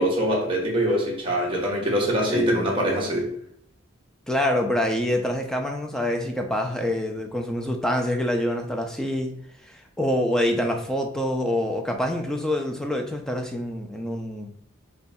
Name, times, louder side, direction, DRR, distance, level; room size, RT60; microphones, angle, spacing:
voice 1, 0.0-3.3, equal, 25° right, -3 dB, 0.9 m, -24 dB
voice 2, 2.3-2.7 4.3-9.3 9.6-14.5, left 1 dB, 5° left, 2 dB, 0.4 m, -26 dB
5.2 x 2.3 x 2.7 m, 0.70 s
head